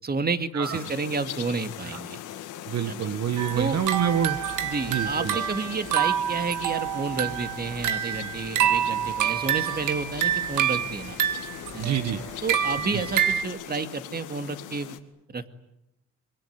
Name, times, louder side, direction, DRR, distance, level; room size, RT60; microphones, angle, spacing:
voice 1, 0.0-2.2 2.9-3.1 3.6-3.8 4.6-11.2 11.7-12.0 12.4-15.0 15.3-15.5, right 4 dB, 30° right, 9 dB, 2.2 m, -30 dB
sound 1, 0.6-15.0, left 11 dB, 85° left, 2.2 m, -40 dB
voice 2, 2.7-4.4 4.9-5.4 11.8-12.2 12.9-13.0, right 9 dB, 60° right, 11 dB, 1.3 m, -27 dB
sound 2, 3.4-13.4, right 10 dB, 85° right, 2.0 m, -27 dB
25.5 x 23.5 x 9.5 m, 0.85 s
cardioid pair, 90°, 30 cm